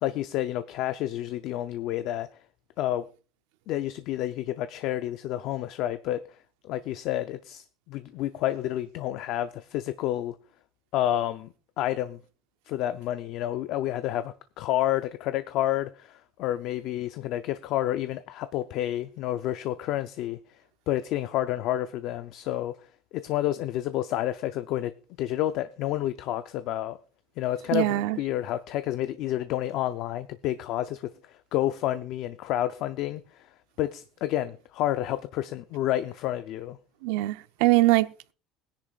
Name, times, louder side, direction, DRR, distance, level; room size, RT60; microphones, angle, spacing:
voice 1, 0.0-2.3 2.8-3.1 3.7-6.2 6.6-10.4 10.9-11.5 11.8-12.2 12.7-20.4 20.9-22.8 23.1-24.9 25.2-27.0 27.4-33.5 33.8-36.8, left 13 dB, 50° left, 0.5 m, -29 dB
voice 2, 27.7-28.2 37.0-38.3, right 18 dB, 80° right, 0.6 m, -23 dB
21.0 x 10.0 x 2.4 m
cardioid pair, 170°, 0 cm